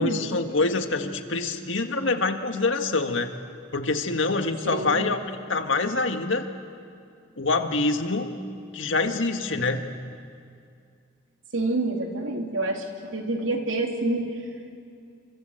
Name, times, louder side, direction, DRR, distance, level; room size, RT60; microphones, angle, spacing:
voice 1, 0.0-3.4 3.7-5.2 5.5-6.5 7.4-8.3 8.7-9.9, left 3 dB, 80° left, 6 dB, 1.8 m, -25 dB
voice 2, 4.6-5.0 11.5-12.8 13.1-14.3, right 2 dB, 85° right, 2 dB, 3.1 m, -27 dB
28.5 x 25.0 x 8.0 m, 2.4 s
head